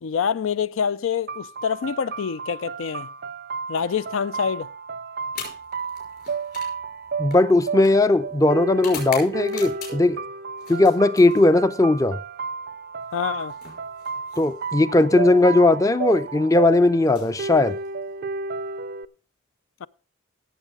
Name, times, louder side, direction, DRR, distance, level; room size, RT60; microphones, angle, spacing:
voice 1, 0.0-3.1 3.7-4.7 13.1-13.5 19.8-19.9, left 7 dB, 75° left, 0.4 m, -26 dB
sound 1, 1.3-19.0, right 4 dB, 50° right, 0.4 m, -32 dB
sound 2, 5.3-10.2 10.6-11.8 13.0-14.9 15.9-16.2 17.0-18.1, left 6 dB, 50° left, 5.3 m, -41 dB
voice 2, 7.2-10.2 10.7-12.2 14.4-17.8, left 2 dB, 15° left, 0.5 m, -18 dB
16.0 x 7.5 x 3.7 m
head